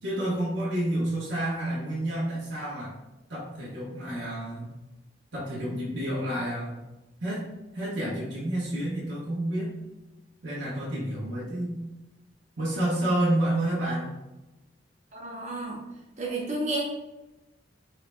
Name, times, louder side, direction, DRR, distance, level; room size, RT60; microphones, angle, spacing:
voice 1, 0.0-2.9 3.3-4.6 5.3-6.8 7.2-7.5 7.7-9.7 10.4-11.8 12.6-14.1, right 1 dB, 85° right, -8 dB, 1.3 m, -29 dB
voice 2, 15.1-15.8 16.2-16.8, right 2 dB, 40° right, -2 dB, 0.9 m, -31 dB
4.6 x 3.7 x 2.3 m, 1.0 s
head